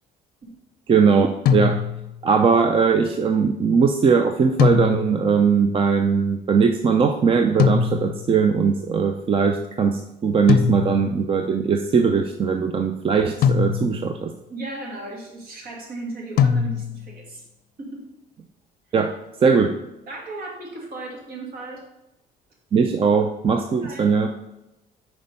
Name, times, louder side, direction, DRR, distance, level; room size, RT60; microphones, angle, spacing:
voice 1, 0.9-1.8 2.2-14.3 18.9-19.1 19.4-19.8 22.7-24.3, right 5 dB, 35° right, 6 dB, 0.5 m, -20 dB
sound 1, 1.5-2.2 4.6-5.3 7.6-8.4 10.5-11.2 13.4-14.2 16.4-17.2, left 7 dB, 65° left, 0.5 m, -21 dB
voice 2, 14.5-17.4 17.8-18.1 20.1-21.8 23.6-24.2, right 2 dB, 60° right, -1 dB, 2.3 m, -36 dB
5.9 x 4.5 x 5.2 m, 0.91 s
cardioid pair, 110°, 17 cm